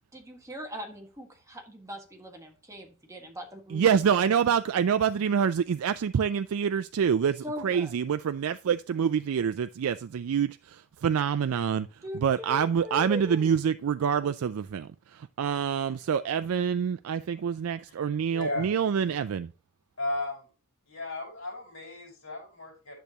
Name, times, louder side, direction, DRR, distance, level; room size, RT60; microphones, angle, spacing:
voice 1, 0.1-3.9 7.4-7.9 12.0-13.6, equal, 15° right, 1.6 m, -40 dB
voice 2, 3.7-19.5, right 7 dB, 75° right, 0.4 m, -26 dB
voice 3, 18.3-18.7 20.0-20.5 20.9-23.0, left 2 dB, 70° left, 4.9 m, -34 dB
10.5 x 6.7 x 2.9 m
head